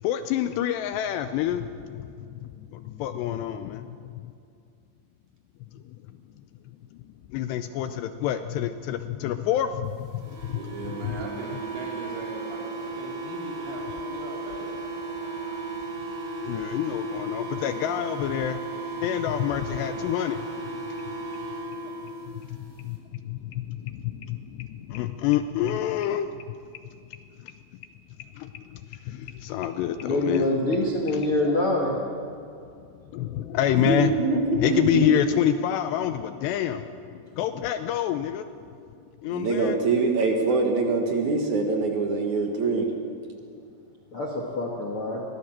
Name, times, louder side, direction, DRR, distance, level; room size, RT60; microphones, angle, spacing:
voice 1, 0.0-4.3 5.7-6.0 7.0-10.6 11.0-11.2 16.4-18.6 19.0-20.8 21.1-21.2 22.3-26.6 27.4-27.5 28.3-30.5 31.1-31.6 33.1-34.1 34.6-38.8 39.2-39.8, left 11 dB, 80° left, 10 dB, 2.6 m, -28 dB
sound 1, 10.2-22.3, right 2 dB, 30° right, 4.1 m, -35 dB
voice 2, 10.5-15.7, right 3 dB, 85° right, -1 dB, 6.1 m, -40 dB
voice 3, 30.0-32.0 44.1-45.2, left 1 dB, 55° left, 0 dB, 1.5 m, -25 dB
voice 4, 33.8-35.1 39.2-42.9, right 3 dB, 55° right, 2 dB, 2.2 m, -24 dB
23.0 x 17.5 x 7.4 m, 2.4 s
omnidirectional pair, 5.4 m